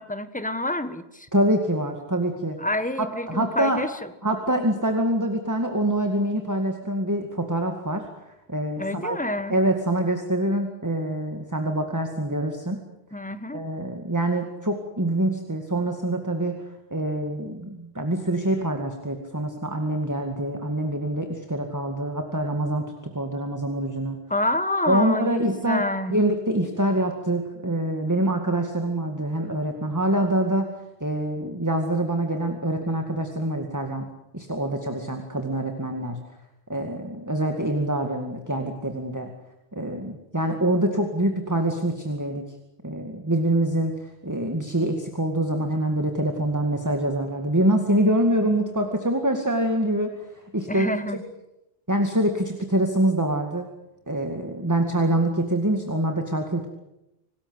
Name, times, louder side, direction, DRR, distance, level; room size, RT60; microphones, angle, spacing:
voice 1, 0.0-1.3 2.6-4.1 8.8-9.6 13.1-13.6 24.3-26.2 50.7-51.2, left 1 dB, 10° left, 11 dB, 1.3 m, -28 dB
voice 2, 1.3-2.6 3.3-3.8 4.2-9.2 9.5-12.8 13.5-16.7 16.9-22.8 23.1-24.2 24.9-25.8 26.1-30.7 31.0-34.1 34.3-36.2 36.7-39.3 39.7-42.4 42.8-50.9 51.9-53.7 54.1-56.7, right 1 dB, 15° right, 4 dB, 2.1 m, -25 dB
26.5 x 19.5 x 8.1 m, 0.89 s
omnidirectional pair, 1.1 m